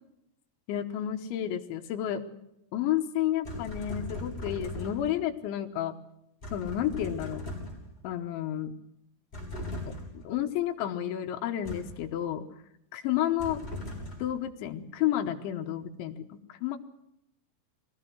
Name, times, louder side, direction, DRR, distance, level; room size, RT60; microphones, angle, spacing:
voice 1, 0.7-2.2 2.7-6.0 6.5-7.5 8.0-8.7 9.9-12.5 12.9-13.6 14.2-16.8, left 11 dB, 75° left, 6 dB, 3.2 m, -31 dB
sound 1, 3.4-5.2 6.4-8.0 9.3-10.2 11.7-12.1 13.4-14.4, left 1 dB, 10° left, 6.2 m, -39 dB
23.0 x 16.5 x 7.8 m, 0.80 s
omnidirectional pair, 5.8 m